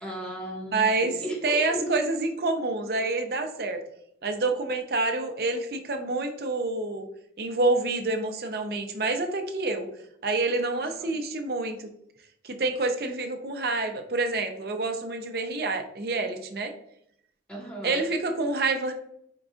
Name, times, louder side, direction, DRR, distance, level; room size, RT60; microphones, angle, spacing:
voice 1, 0.0-2.1 10.7-11.1 17.5-18.1, right 1 dB, 5° left, -5 dB, 1.3 m, -35 dB
voice 2, 0.7-1.1 1.4-3.8 4.2-7.1 7.4-9.9 10.2-11.9 12.4-16.7 17.8-18.9, right 3 dB, 60° right, 5 dB, 0.6 m, -27 dB
4.6 x 3.7 x 2.4 m, 0.71 s
head